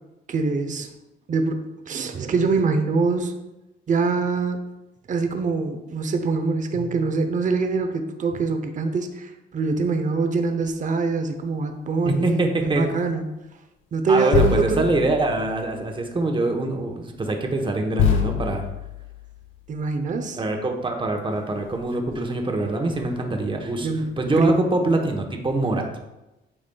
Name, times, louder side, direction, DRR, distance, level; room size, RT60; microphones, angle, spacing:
voice 1, 0.3-0.9 1.3-1.6 1.9-3.3 3.9-4.6 5.1-13.2 13.9-14.8 19.7-20.4 23.8-24.1 24.4-24.6, right 4 dB, 40° right, 6 dB, 0.7 m, -24 dB
sound 1, 10.6-10.8 12.6-12.8 14.3-15.9 17.1-17.2 17.9-19.7 21.3-21.4 21.6-22.2 22.9-23.5 24.2-24.4, left 9 dB, 80° left, 0.7 m, -27 dB
voice 2, 12.1-12.9 14.1-18.6 20.4-23.9 24.2-25.9, right 2 dB, 25° right, 3 dB, 1.0 m, -24 dB
8.8 x 4.9 x 2.3 m, 0.99 s
cardioid pair, 90°, 20 cm